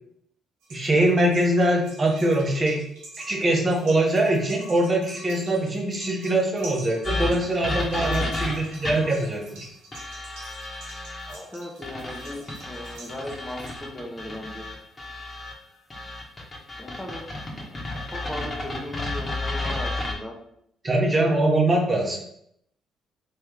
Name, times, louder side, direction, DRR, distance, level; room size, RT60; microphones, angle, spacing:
sound 1, 0.6-13.8, right 1 dB, 90° right, 1.2 m, -46 dB
voice 1, 0.7-2.8 3.2-9.7 20.8-22.2, right 1 dB, 35° right, -1 dB, 1.0 m, -22 dB
sound 2, 7.0-9.2 9.9-11.3 11.8-15.5 15.9-20.1, left 2 dB, 30° left, 1.2 m, -32 dB
voice 2, 11.3-14.6 16.8-17.3 17.5-17.8 18.1-20.4, left 1 dB, 15° left, 1 dB, 0.9 m, -37 dB
3.2 x 3.0 x 3.7 m, 0.72 s
hypercardioid pair, 50°, 0 cm